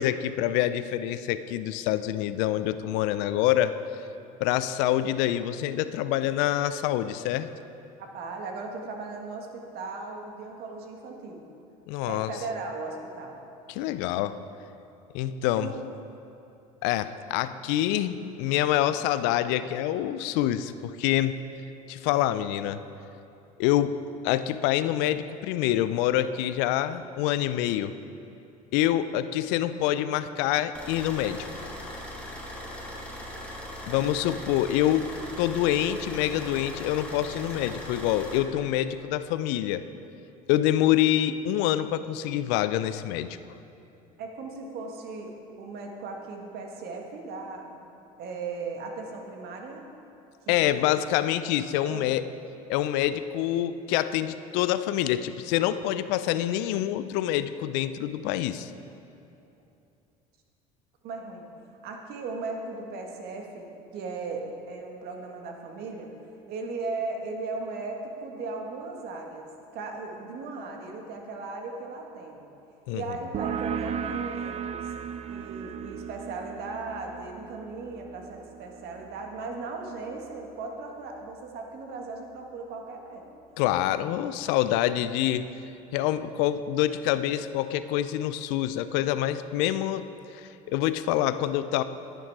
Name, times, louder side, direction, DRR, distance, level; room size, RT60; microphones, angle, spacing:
voice 1, 0.0-3.8 4.4-7.5 11.9-12.3 13.7-14.4 15.1-15.7 16.8-21.4 21.9-22.8 23.6-24.0 24.2-27.9 28.7-31.7 33.9-35.1 35.4-39.8 40.5-43.4 50.5-52.2 52.7-58.7 72.9-73.0 83.6-85.5 85.9-90.1 90.3-91.8, left 12 dB, 70° left, 13 dB, 0.5 m, -26 dB
voice 2, 8.0-11.5 12.0-13.4 15.6-15.8 33.9-34.1 44.2-47.8 48.2-49.9 50.4-50.9 51.8-52.1 61.0-61.5 61.8-66.1 66.5-72.5 72.9-74.9 75.3-83.3 83.9-84.0, right 3 dB, 60° right, 2 dB, 1.6 m, -37 dB
sound 1, 30.7-38.4, left 1 dB, 5° left, 2.2 m, -39 dB
sound 2, 73.3-80.6, right 7 dB, 35° right, 0.4 m, -36 dB
11.0 x 9.1 x 4.8 m, 2.8 s
hypercardioid pair, 80°, 19 cm